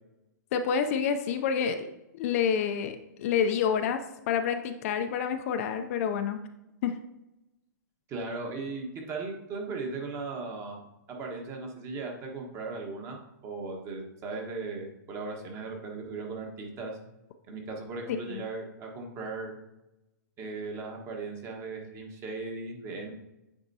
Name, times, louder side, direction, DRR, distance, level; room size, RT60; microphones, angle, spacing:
voice 1, 0.5-1.9 2.1-6.4 6.8-6.9 18.3-18.5, left 7 dB, 45° left, 8 dB, 0.5 m, -28 dB
voice 2, 8.1-10.8 11.1-17.0 17.5-19.5 20.4-23.1, right 3 dB, 25° right, 1 dB, 1.3 m, -37 dB
8.8 x 4.4 x 2.8 m, 0.93 s
hypercardioid pair, 135°, 11 cm